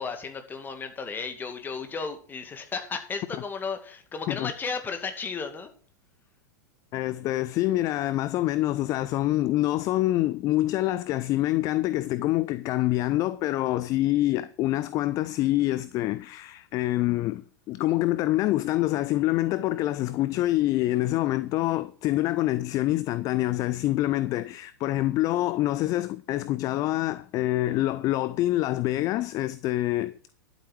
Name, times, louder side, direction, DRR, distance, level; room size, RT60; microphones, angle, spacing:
voice 1, 0.0-5.7, left 5 dB, 20° left, 2.2 m, -34 dB
voice 2, 6.9-30.2, left 16 dB, 35° left, 0.6 m, -26 dB
11.5 x 8.2 x 6.1 m
figure-of-eight pair, 95°, 10 cm